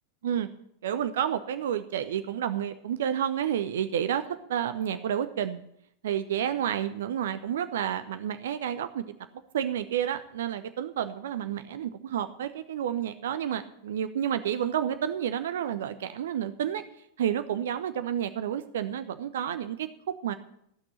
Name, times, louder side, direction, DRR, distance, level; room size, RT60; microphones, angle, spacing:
voice 1, 0.8-5.6 6.0-9.0 9.5-16.8 17.2-19.9 20.2-20.3, right 9 dB, 60° right, 11 dB, 0.7 m, -30 dB
15.0 x 6.1 x 8.7 m, 0.74 s
figure-of-eight pair, 90°, 0 cm